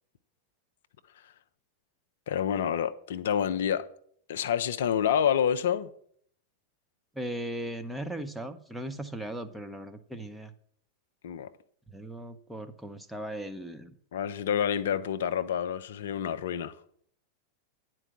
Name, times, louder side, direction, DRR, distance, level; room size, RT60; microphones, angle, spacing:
voice 1, 2.3-3.9 4.3-5.9 11.2-11.5 14.1-16.7, left 8 dB, 60° left, 0.5 m, -28 dB
voice 2, 7.2-10.5 11.9-14.0, right 1 dB, ahead, 0.8 m, -38 dB
9.9 x 4.6 x 7.5 m
figure-of-eight pair, 90°, 0 cm